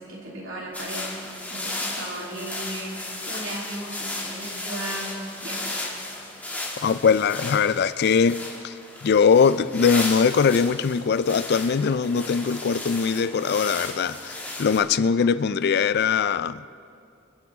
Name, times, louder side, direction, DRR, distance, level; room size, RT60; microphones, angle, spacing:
voice 1, 0.0-5.8, right 1 dB, 85° right, -4 dB, 3.3 m, -36 dB
sound 1, 0.7-14.8, left 2 dB, 10° left, 2.2 m, -35 dB
voice 2, 6.8-8.8 9.0-16.7, left 6 dB, 55° left, 15 dB, 0.4 m, -21 dB
27.0 x 10.0 x 3.6 m, 2.4 s
head